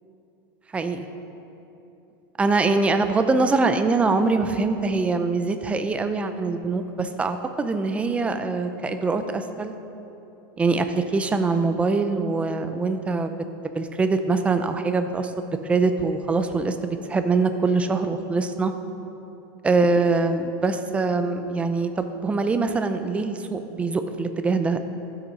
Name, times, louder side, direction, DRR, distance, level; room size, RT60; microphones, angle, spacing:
voice 1, 0.7-1.0 2.4-9.7 10.6-13.3 13.7-18.7 19.6-24.8, right 3 dB, 10° right, 8 dB, 0.5 m, -23 dB
12.5 x 7.9 x 5.3 m, 3.0 s
supercardioid pair, 160°, 12 cm